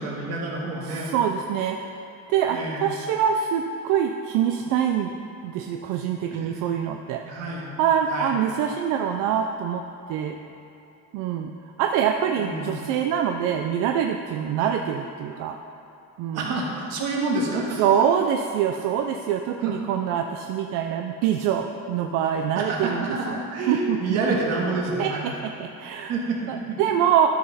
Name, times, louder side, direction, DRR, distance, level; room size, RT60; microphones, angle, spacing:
voice 1, 0.0-1.1 2.5-2.8 6.2-6.7 7.3-7.7 8.1-8.3 12.4-12.7 14.6-14.7 16.3-17.8 19.6-19.7 22.6-25.2 26.1-26.8, right 3 dB, 55° right, -3 dB, 1.8 m, -28 dB
voice 2, 0.8-1.9 2.3-5.1 5.4-7.2 7.8-10.4 11.1-11.5 11.8-15.6 16.2-16.5 17.8-24.2 25.0-26.1 26.5-27.3, right 8 dB, 80° right, 4 dB, 0.5 m, -25 dB
12.5 x 6.0 x 4.1 m, 2.8 s
cardioid pair, 175°, 31 cm